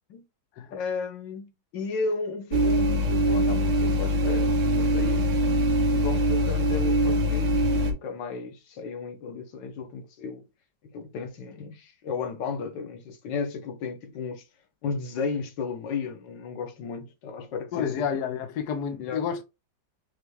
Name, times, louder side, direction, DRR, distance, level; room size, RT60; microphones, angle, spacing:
voice 1, 0.7-5.3 5.9-10.4 10.8-14.4 14.8-17.9 19.0-19.2, left 4 dB, 90° left, 1.6 m, -34 dB
sound 1, 2.5-7.9, equal, 80° right, 1.6 m, -23 dB
voice 2, 17.7-19.4, left 7 dB, 70° left, 1.2 m, -30 dB
5.7 x 2.3 x 3.2 m
omnidirectional pair, 1.9 m